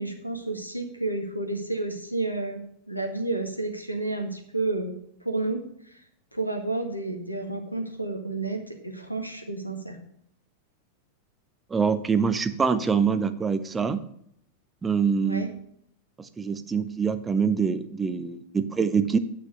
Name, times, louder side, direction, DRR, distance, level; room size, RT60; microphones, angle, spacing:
voice 1, 0.0-2.6 2.9-4.9 5.2-5.6 6.3-10.0 15.2-15.5, right 2 dB, 90° left, 5 dB, 1.7 m, -30 dB
voice 2, 11.7-14.0 14.8-15.4 16.2-19.2, right 5 dB, 15° right, 10 dB, 0.8 m, -25 dB
9.4 x 5.9 x 6.8 m, 0.70 s
figure-of-eight pair, 90°, 0 cm